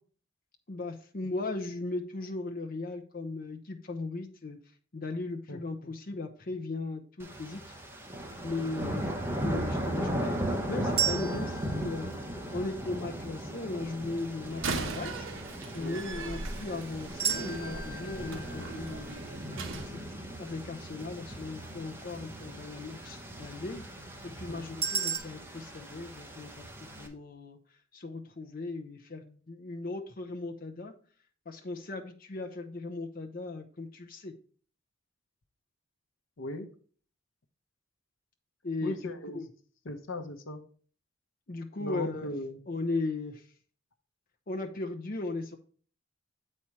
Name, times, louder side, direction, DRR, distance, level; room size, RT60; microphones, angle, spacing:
voice 1, 0.7-4.6 4.9-7.6 8.4-9.1 9.4-10.4 10.7-12.1 12.5-15.3 15.7-19.2 19.9-23.8 24.2-27.6 27.9-30.9 31.5-34.3 38.6-39.0 39.3-39.5 41.5-42.3 42.7-43.5 44.5-45.6, left 3 dB, 45° left, 3 dB, 0.7 m, -37 dB
voice 2, 5.5-5.9 15.8-16.0 24.5-24.6 36.4-36.7 38.8-39.4 39.8-40.6 41.8-42.6, left 1 dB, 80° left, 7 dB, 0.9 m, -38 dB
sound 1, 7.2-27.1, equal, 10° right, 1.0 m, -37 dB
sound 2, 11.0-13.1 17.2-20.3 24.8-25.2, right 7 dB, 30° right, 1.6 m, -35 dB
Slam, 14.5-19.9, right 3 dB, 85° right, 0.8 m, -39 dB
8.2 x 4.3 x 4.7 m, 0.43 s
head